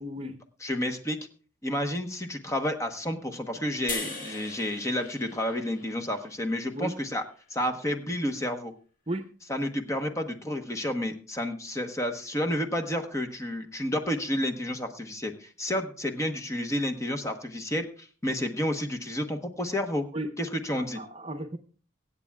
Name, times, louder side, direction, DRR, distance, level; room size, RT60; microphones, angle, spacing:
voice 1, 0.0-0.4 6.7-6.9 9.1-9.3 20.1-20.3 20.7-21.6, right 1 dB, 30° right, 8 dB, 0.9 m, -34 dB
voice 2, 0.6-1.2 1.6-7.2 7.5-8.7 9.5-20.0 20.4-21.0, left 1 dB, 15° left, 6 dB, 1.0 m, -30 dB
sound 1, 3.9-7.2, left 4 dB, 45° left, 2.2 m, -40 dB
24.0 x 8.4 x 2.3 m, 0.40 s
head